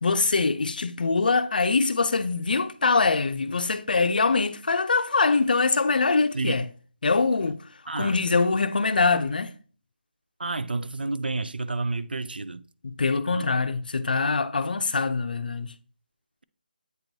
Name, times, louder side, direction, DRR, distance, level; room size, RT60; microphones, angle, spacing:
voice 1, 0.0-6.7 7.0-7.6 8.0-9.5 12.8-15.7, left 4 dB, 65° left, 0.5 m, -23 dB
voice 2, 10.4-12.6 13.3-13.5, right 3 dB, 85° right, 0.4 m, -30 dB
8.1 x 4.5 x 2.6 m
figure-of-eight pair, 165°, 5 cm